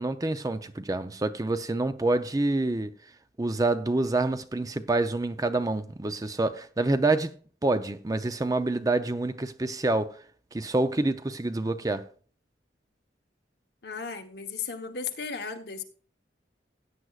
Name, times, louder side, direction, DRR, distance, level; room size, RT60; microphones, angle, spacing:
voice 1, 0.0-2.9 3.4-7.3 7.6-10.2 10.5-12.1, right 2 dB, 20° right, 0.5 m, -27 dB
voice 2, 13.8-15.8, left 5 dB, 60° left, 1.1 m, -35 dB
16.0 x 9.2 x 2.4 m
head